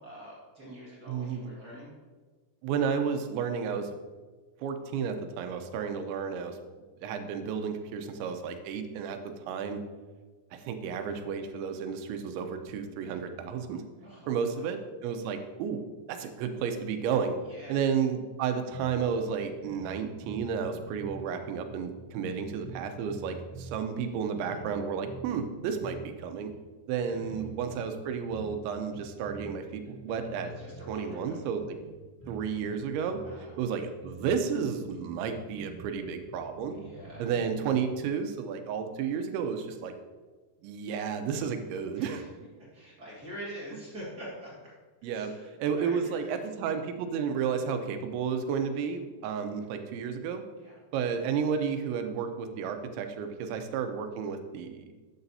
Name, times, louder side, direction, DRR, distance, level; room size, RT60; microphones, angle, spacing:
voice 1, 0.0-1.9 14.0-14.7 17.4-17.8 27.0-27.4 30.4-31.4 33.2-33.6 36.7-37.3 41.9-42.3 42.6-44.7 45.1-46.4 50.6-50.8, equal, 60° right, -6 dB, 1.0 m, -45 dB
voice 2, 1.1-1.5 2.6-3.9 4.6-6.6 7.0-9.8 10.5-13.8 14.3-15.8 16.1-17.3 17.7-26.5 26.9-30.5 30.9-31.8 32.3-33.2 33.6-36.8 37.2-39.9 40.6-42.2 45.0-45.3 45.6-50.4 50.9-54.9, right 6 dB, 85° right, 7 dB, 3.1 m, -32 dB
sound 1, 18.7-19.0 19.3-19.4 19.6-21.2 21.7-23.8 24.1-26.0 26.4-26.6 27.0-28.6 28.9-29.6 29.8-30.9 31.3-33.4 33.7-33.8 34.0-34.3 34.6-37.9, right 3 dB, 10° left, 1.0 m, -47 dB
12.0 x 8.8 x 2.8 m, 1.3 s
omnidirectional pair, 5.1 m